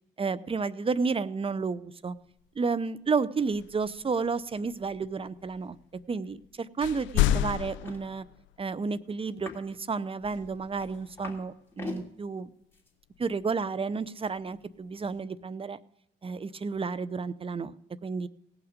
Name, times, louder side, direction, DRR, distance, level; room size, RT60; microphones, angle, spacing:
voice 1, 0.2-2.1 2.6-5.8 6.1-8.2 8.6-12.5 13.2-15.8 16.2-17.7 18.0-18.3, right 4 dB, 25° right, 17 dB, 0.6 m, -31 dB
sound 1, 2.3-2.4 3.5-6.5 6.8-9.0 10.2-11.3 13.1-13.7 14.4-15.2, left 12 dB, 70° left, 0.5 m, -33 dB
sound 2, 7.2-7.3 7.6-8.0 9.3-9.7 10.3-11.4 11.7-12.1 12.7-12.9, left 3 dB, 10° left, 2.9 m, -42 dB
18.0 x 5.9 x 5.1 m, 0.79 s
supercardioid pair, 70°, 20 cm